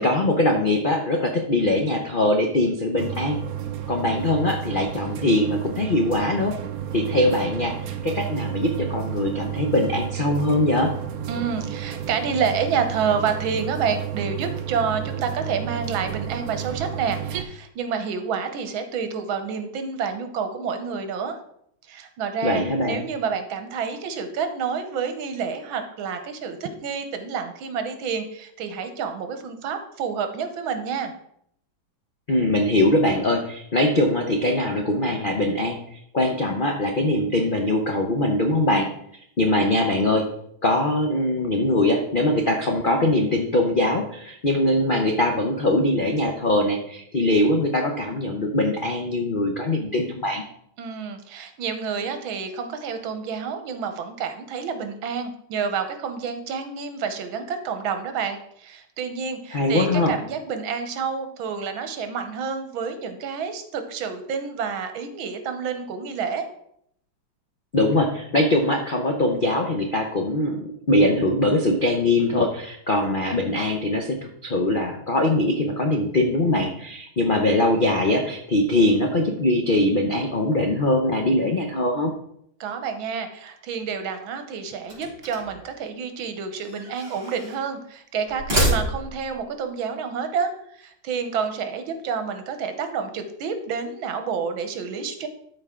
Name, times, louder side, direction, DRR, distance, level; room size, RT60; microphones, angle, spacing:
voice 1, 0.0-3.4 3.9-6.6 6.9-7.7 8.0-10.9 22.4-23.0 32.3-38.9 39.4-40.3 40.6-50.4 59.5-60.1 67.7-82.1, left 1 dB, 70° left, 2 dB, 0.5 m, -22 dB
sound 1, 3.0-17.4, right 9 dB, 65° right, 0.9 m, -31 dB
voice 2, 11.3-21.4 21.9-31.1 50.8-66.5 82.6-95.3, right 6 dB, 80° right, 8 dB, 1.7 m, -29 dB
sound 2, 84.8-85.6 86.5-87.6 88.3-89.3, right 1 dB, 30° right, 3.8 m, -27 dB
13.0 x 4.6 x 3.6 m, 0.71 s
omnidirectional pair, 2.2 m